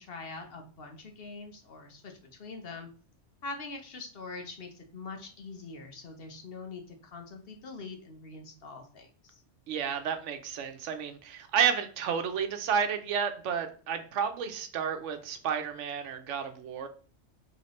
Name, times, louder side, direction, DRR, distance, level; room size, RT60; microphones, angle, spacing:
voice 1, 0.0-2.9 3.4-9.4, left 3 dB, 55° left, 4 dB, 1.0 m, -43 dB
voice 2, 9.7-16.9, right 7 dB, 80° right, 7 dB, 1.0 m, -31 dB
4.3 x 3.1 x 3.0 m, 0.39 s
omnidirectional pair, 1.2 m